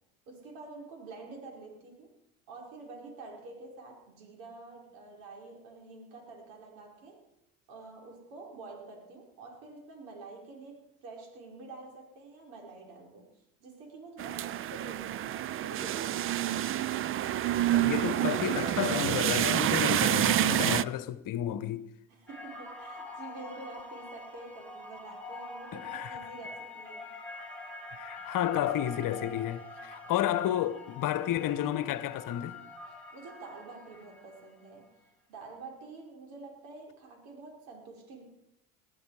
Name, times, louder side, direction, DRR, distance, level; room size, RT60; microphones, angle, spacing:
voice 1, 0.3-2.1 2.5-7.3 7.7-13.3 13.6-16.4 22.1-27.1 33.1-34.9 35.3-38.2, right 3 dB, 70° right, 5.1 m, -47 dB
sound 1, 14.2-20.8, right 12 dB, 30° right, 0.5 m, -28 dB
voice 2, 17.7-21.8 25.7-26.2 27.9-32.6, left 12 dB, 45° left, 1.2 m, -31 dB
sound 2, 22.3-34.6, left 3 dB, 5° left, 5.7 m, -45 dB
20.5 x 13.5 x 4.9 m
hypercardioid pair, 80°, 44 cm